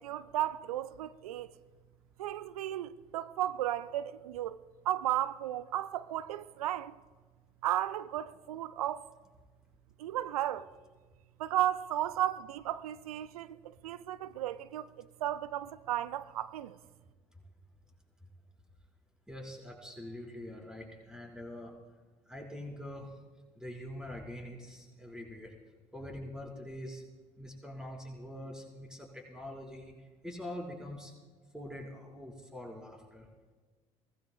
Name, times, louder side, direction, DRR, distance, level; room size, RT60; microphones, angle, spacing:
voice 1, 0.0-1.5 2.2-4.6 4.8-7.0 7.6-9.1 10.0-10.7 11.4-16.8, right 12 dB, 75° right, 0.5 m, -34 dB
voice 2, 19.3-21.7 22.3-23.2 23.6-25.5 25.9-27.0 27.4-29.9 30.2-31.1 31.5-33.3, left 1 dB, 5° right, 4.5 m, -44 dB
23.0 x 17.5 x 2.3 m
figure-of-eight pair, 55°, 19 cm